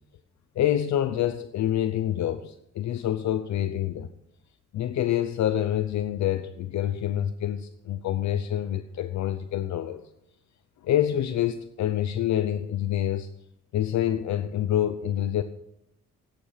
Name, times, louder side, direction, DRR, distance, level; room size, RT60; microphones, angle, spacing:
voice 1, 0.5-4.1 4.7-10.0 10.8-13.3 13.7-15.4, left 11 dB, 65° left, 0.8 m, -27 dB
14.0 x 10.0 x 5.8 m
cardioid pair, 90°, 30 cm